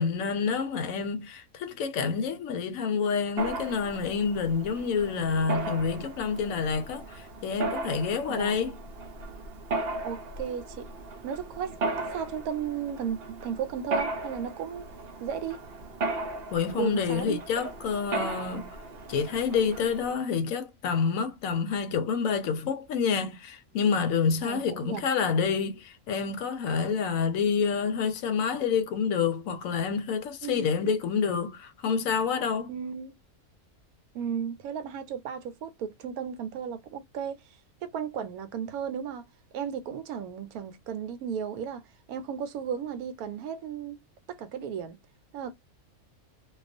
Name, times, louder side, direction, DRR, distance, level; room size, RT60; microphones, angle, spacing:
voice 1, 0.0-8.7 16.5-18.8 19.1-32.7, left 6 dB, 75° left, 0.9 m, -28 dB
Mechanisms, 3.4-20.1, right 2 dB, 60° right, 0.7 m, -36 dB
voice 2, 10.0-10.9 11.2-14.9 15.2-15.6 16.7-17.7 24.4-25.1 30.4-30.9 32.7-33.2 34.1-37.4 37.8-39.3 39.5-44.0 44.3-45.0 45.3-45.5, right 8 dB, 85° right, 1.1 m, -35 dB
2.3 x 2.3 x 2.5 m
omnidirectional pair, 1.5 m